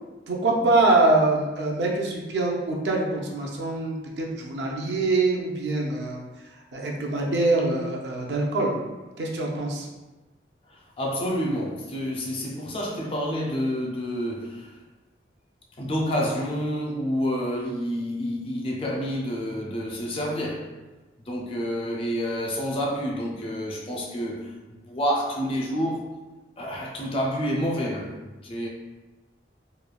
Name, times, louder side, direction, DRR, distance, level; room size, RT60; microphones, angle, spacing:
voice 1, 0.3-6.2 6.7-8.8 9.2-9.9, right 2 dB, 75° right, 0.5 m, -24 dB
voice 2, 10.7-14.8 15.8-20.7 21.3-26.1 26.6-28.1 28.4-28.7, equal, 30° left, 0.4 m, -28 dB
3.1 x 2.1 x 2.3 m
head